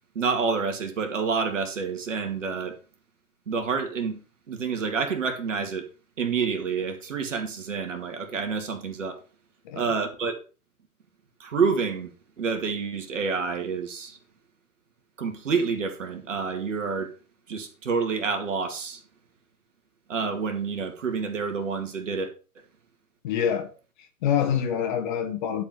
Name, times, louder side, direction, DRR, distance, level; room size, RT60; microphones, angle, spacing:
voice 1, 0.2-2.7 3.5-4.2 4.5-5.8 6.2-9.2 9.7-10.4 11.4-12.1 12.4-14.2 15.2-17.1 17.5-19.0 20.1-22.3, right 5 dB, 55° right, 2.4 m, -28 dB
voice 2, 23.2-23.7 24.2-25.6, left 8 dB, 30° left, 1.8 m, -26 dB
11.5 x 4.9 x 6.4 m
figure-of-eight pair, 130°, 45 cm